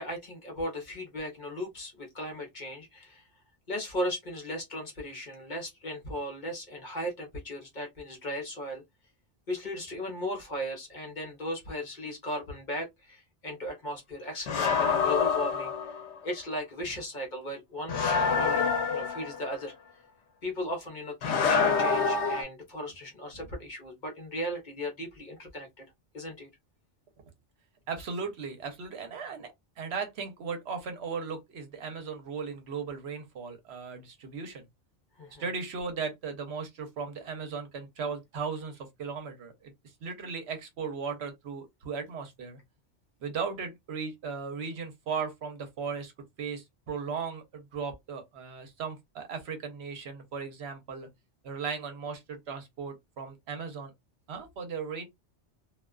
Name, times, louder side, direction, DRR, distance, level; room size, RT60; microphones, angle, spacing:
voice 1, 0.0-3.2 3.7-8.8 9.5-18.0 18.4-19.7 20.4-25.8 26.1-26.5 35.2-35.4, equal, 45° left, 0.8 m, -37 dB
sound 1, 14.5-16.1 17.9-19.5 21.2-22.4, left 5 dB, 80° left, 0.9 m, -26 dB
voice 2, 27.9-34.6 35.4-39.7 40.0-42.6 43.2-46.1 46.4-51.1 51.4-53.9 54.3-55.1, right 5 dB, 70° right, 0.9 m, -37 dB
2.4 x 2.2 x 2.2 m
omnidirectional pair, 1.2 m